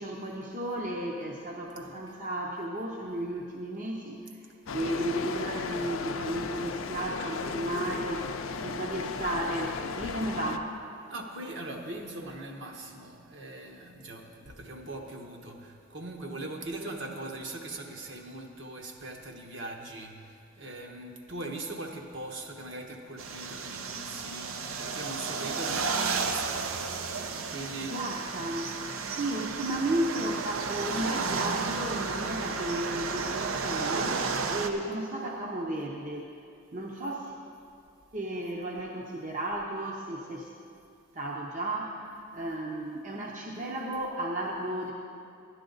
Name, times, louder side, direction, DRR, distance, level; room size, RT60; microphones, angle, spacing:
voice 1, 0.0-4.4 4.7-10.7 27.8-36.3 36.7-37.4 38.1-40.5 41.1-44.9, right 1 dB, 40° right, -2 dB, 0.7 m, -34 dB
voice 2, 1.6-2.0 10.0-10.1 11.1-26.6 27.3-27.9, right 2 dB, 60° right, 2 dB, 1.1 m, -41 dB
sound 1, 4.7-10.6, left 5 dB, 75° left, 0.5 m, -35 dB
sound 2, 23.2-34.7, right 4 dB, 90° right, 0.7 m, -32 dB
11.5 x 11.0 x 3.9 m, 2.4 s
head